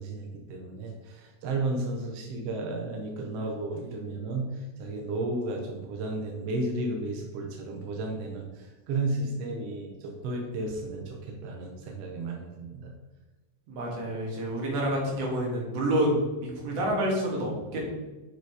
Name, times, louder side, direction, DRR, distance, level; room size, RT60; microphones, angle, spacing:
voice 1, 0.0-12.9, right 2 dB, 75° right, 1 dB, 1.5 m, -33 dB
voice 2, 13.7-17.8, right 1 dB, 55° right, -3 dB, 2.6 m, -28 dB
6.9 x 4.9 x 4.7 m, 1.2 s
omnidirectional pair, 4.0 m